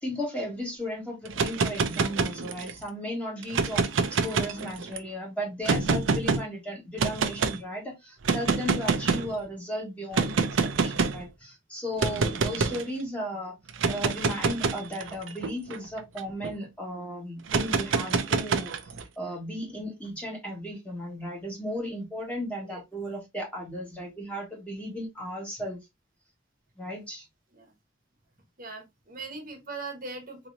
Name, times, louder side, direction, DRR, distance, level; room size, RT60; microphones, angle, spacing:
voice 1, 0.0-3.8 4.1-10.3 10.8-13.5 13.9-18.8 19.2-25.8 26.8-27.2, equal, 5° left, 1.6 m, -35 dB
sound 1, 1.2-2.8 3.4-5.0 5.6-6.4 7.0-7.6 8.2-9.3 10.1-11.2 12.0-12.8 13.7-16.5 17.5-19.0, right 4 dB, 85° right, 0.6 m, -26 dB
voice 2, 4.2-4.6 9.0-9.3 12.6-12.9 22.6-22.8 27.5-27.7 28.6-30.5, right 3 dB, 50° right, 1.2 m, -41 dB
4.1 x 3.0 x 2.6 m
head